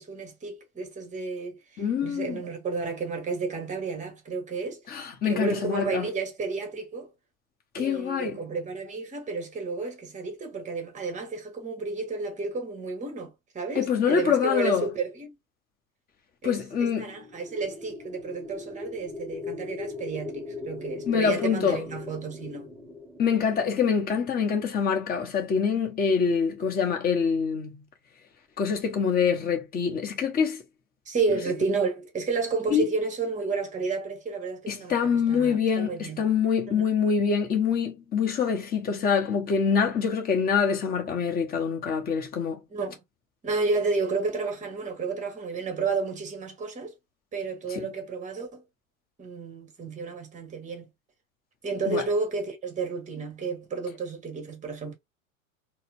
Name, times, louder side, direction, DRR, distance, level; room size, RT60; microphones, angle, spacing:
voice 1, 0.0-1.6 2.0-4.8 5.2-7.1 7.8-13.3 13.5-15.4 16.4-22.7 31.1-36.2 36.7-36.8 42.7-43.0 43.4-46.9 47.3-48.6 49.2-50.9 51.6-54.9, right 4 dB, 15° right, 1.0 m, -31 dB
voice 2, 1.8-2.4 4.9-6.1 7.7-8.4 13.7-14.9 16.4-17.1 21.1-21.8 23.2-27.8 28.6-30.6 32.7-32.9 34.7-42.6 47.7-47.8 51.9-52.0, left 6 dB, 20° left, 0.9 m, -25 dB
sound 1, 17.0-25.1, left 4 dB, ahead, 0.3 m, -40 dB
4.1 x 2.0 x 2.5 m
figure-of-eight pair, 90°, 42 cm